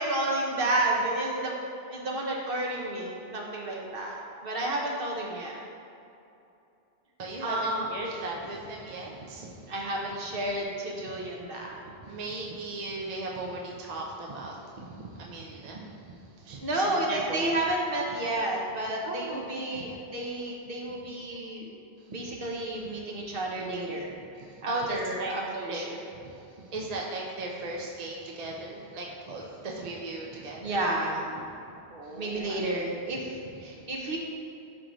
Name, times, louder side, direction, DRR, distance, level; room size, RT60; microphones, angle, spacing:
voice 1, 0.0-1.5 1.9-5.6 7.4-7.8 9.7-11.8 16.6-21.7 22.1-24.1 24.6-26.0 30.6-31.3 32.1-34.2, right 1 dB, 60° right, -1 dB, 1.1 m, -31 dB
voice 2, 7.2-9.7 11.0-11.2 11.9-17.4 19.0-19.8 22.1-22.3 23.5-23.6 24.3-25.3 25.7-30.8 31.9-32.6 33.6-33.8, right 2 dB, 45° right, -2 dB, 0.7 m, -38 dB
11.0 x 3.8 x 3.1 m, 2.7 s
omnidirectional pair, 1.1 m